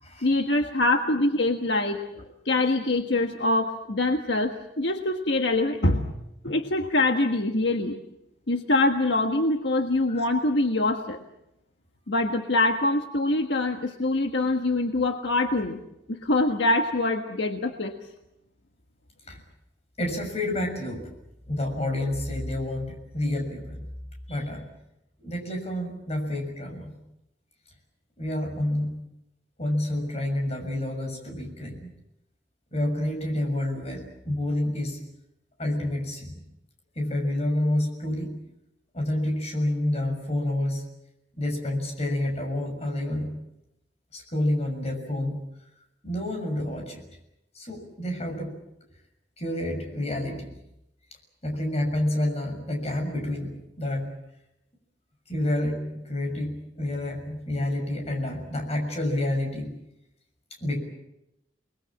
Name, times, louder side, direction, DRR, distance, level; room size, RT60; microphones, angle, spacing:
voice 1, 0.2-2.1 2.4-6.2 6.4-8.0 8.5-11.2 12.1-15.8 16.1-18.0, left 2 dB, 70° left, 5 dB, 1.5 m, -24 dB
voice 2, 20.0-21.0 21.5-23.8 24.3-24.6 25.2-26.9 28.2-28.9 29.6-31.9 32.7-35.0 35.6-36.3 36.9-38.3 38.9-40.8 41.4-43.3 44.1-45.4 46.0-47.0 47.5-48.5 49.4-50.5 51.4-54.1 55.3-59.7 60.6-60.8, left 1 dB, 35° left, 3 dB, 6.7 m, -29 dB
29.0 x 21.0 x 7.6 m, 0.87 s
head